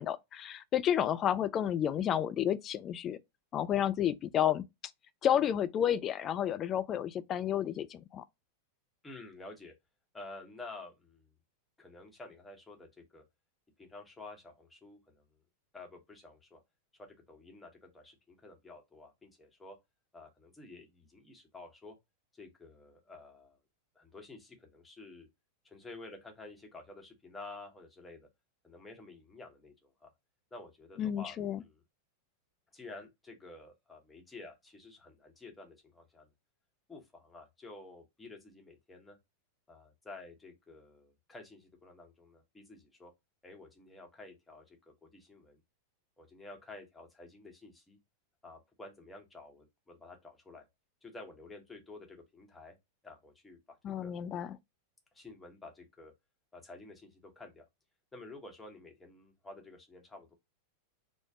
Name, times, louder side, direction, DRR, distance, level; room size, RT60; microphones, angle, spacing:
voice 1, 0.0-3.2 3.5-4.6 5.2-8.2 31.0-31.6 53.8-54.6, left 10 dB, 30° left, 0.3 m, -31 dB
voice 2, 9.0-9.7 10.1-11.3 11.8-13.2 13.8-15.2 15.7-16.6 17.0-19.8 20.1-22.0 22.3-23.6 23.9-25.3 25.6-28.3 28.6-30.1 30.5-31.8 32.7-36.3 36.9-39.2 39.7-43.1 43.4-45.6 46.2-48.0 48.4-50.7 51.0-52.8 53.0-53.8 54.0-54.1 55.1-56.1 56.5-57.7 58.1-60.3, left 2 dB, 10° left, 0.9 m, -51 dB
3.2 x 2.0 x 3.5 m
figure-of-eight pair, 90°, 0 cm